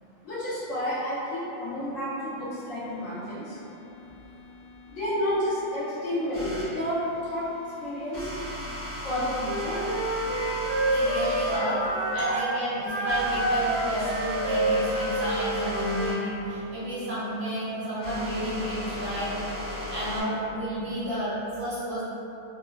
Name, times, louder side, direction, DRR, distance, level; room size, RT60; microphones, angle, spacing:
voice 1, 0.2-3.6 4.9-7.5 7.8-8.3 9.0-9.8 11.6-11.7 12.3-12.4, equal, 70° left, -11 dB, 1.3 m, -30 dB
sound 1, 2.3-8.6, left 4 dB, 80° right, 1.0 m, -50 dB
sound 2, 6.3-6.7 8.1-11.6 12.3-20.2, left 1 dB, 40° left, 0.7 m, -36 dB
Wind instrument woodwind instrument, 9.4-12.4 12.8-16.2, right 2 dB, 15° left, 0.4 m, -28 dB
voice 2, 10.9-11.8 12.1-19.3 19.8-22.0, equal, 55° right, -11 dB, 0.9 m, -31 dB
3.5 x 2.1 x 2.3 m, 2.9 s
omnidirectional pair, 1.5 m